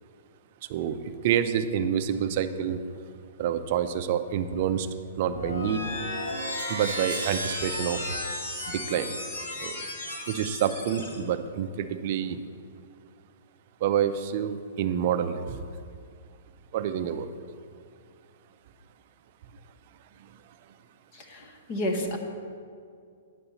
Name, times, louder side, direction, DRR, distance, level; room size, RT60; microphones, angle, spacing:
voice 1, 0.7-2.8 3.4-4.9 5.2-5.8 6.7-8.0 8.7-9.2 9.6-9.8 10.3-12.4 13.8-15.6 16.7-17.3, right 9 dB, 35° right, 10 dB, 0.4 m, -27 dB
sound 1, 5.2-11.2, left 1 dB, 80° left, 2.0 m, -34 dB
sound 2, 6.2-9.3, right 7 dB, 70° right, 0.7 m, -42 dB
voice 2, 21.1-22.2, equal, 25° left, 3 dB, 0.7 m, -31 dB
9.6 x 4.2 x 6.9 m, 2.3 s
hypercardioid pair, 175°, 0 cm